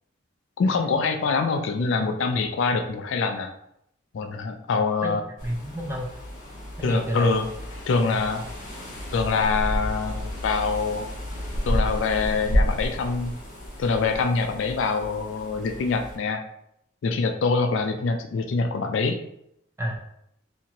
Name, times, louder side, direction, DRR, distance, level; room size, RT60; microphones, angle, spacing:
voice 1, 0.6-3.5 4.1-5.2 6.8-7.5 7.9-8.4 9.1-11.1 11.6-13.3 13.8-16.4 17.0-19.2, left 4 dB, 65° left, 6 dB, 0.3 m, -24 dB
voice 2, 5.0-6.1 6.8-7.3 19.8-20.0, equal, 15° right, -1 dB, 0.4 m, -30 dB
sound 1, 5.4-16.2, equal, 40° left, 0.8 m, -31 dB
2.8 x 2.5 x 2.8 m, 0.76 s
head